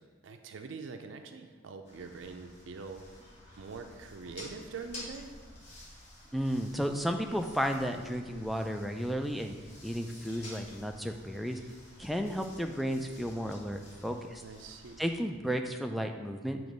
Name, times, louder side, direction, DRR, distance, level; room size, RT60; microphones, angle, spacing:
voice 1, 0.0-3.0 3.6-5.3 14.4-15.0, right 4 dB, 80° right, 6 dB, 0.5 m, -44 dB
sound 1, 1.8-15.2, left 1 dB, 35° left, 1.3 m, -51 dB
voice 2, 6.3-9.6 9.8-11.6 12.0-14.4 15.0-16.6, equal, ahead, 4 dB, 0.3 m, -33 dB
7.7 x 3.1 x 5.1 m, 1.5 s
head